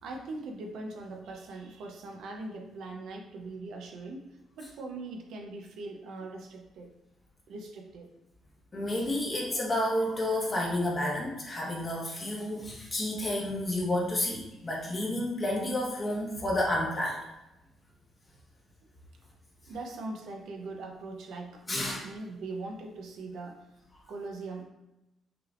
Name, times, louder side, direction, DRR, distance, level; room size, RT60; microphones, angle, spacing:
voice 1, 0.0-6.9 7.5-8.1 19.7-23.6 24.1-24.6, right 2 dB, 80° right, 2 dB, 0.7 m, -41 dB
voice 2, 8.7-17.2 21.7-22.1, left 1 dB, 30° left, -3 dB, 1.3 m, -30 dB
5.8 x 3.3 x 2.5 m, 0.94 s
cardioid pair, 90°, 0 cm